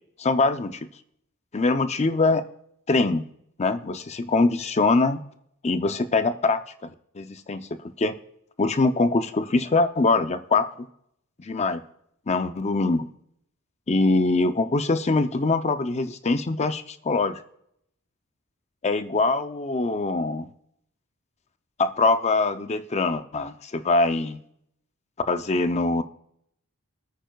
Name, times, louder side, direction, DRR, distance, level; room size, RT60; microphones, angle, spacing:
voice 1, 0.2-0.9 1.5-2.4 2.9-3.2 3.6-5.2 5.6-7.7 8.0-8.2 8.6-10.9 11.4-11.8 12.3-13.1 13.9-17.4 18.8-20.5 21.8-24.4 25.3-26.0, left 3 dB, 30° left, 10 dB, 0.5 m, -23 dB
24.0 x 9.1 x 2.3 m, 0.73 s
head